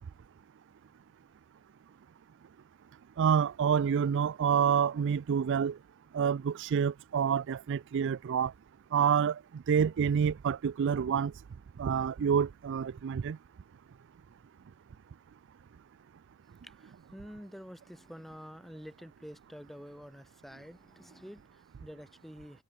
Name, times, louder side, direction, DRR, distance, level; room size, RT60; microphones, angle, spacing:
voice 1, 3.2-5.8 6.1-8.5 8.9-11.3 11.8-13.4, right 7 dB, 55° right, 0.3 m, -28 dB
voice 2, 16.6-22.6, equal, ahead, 6.0 m, -48 dB
head